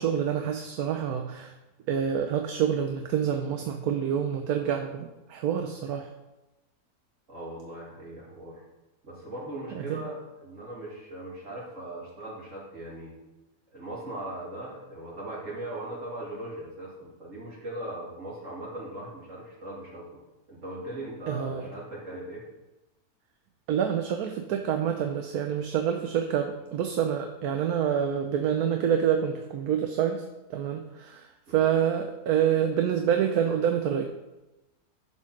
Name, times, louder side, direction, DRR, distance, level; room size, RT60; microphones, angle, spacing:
voice 1, 0.0-1.5 1.9-6.1 9.7-10.0 21.3-21.7 23.7-30.2 30.5-34.0, right 8 dB, 70° right, 5 dB, 1.2 m, -27 dB
voice 2, 7.3-8.6 9.0-13.1 13.7-20.0 20.5-22.4 31.5-31.7, right 1 dB, 50° right, -5 dB, 3.3 m, -39 dB
11.0 x 4.5 x 5.9 m, 1.0 s
omnidirectional pair, 1.7 m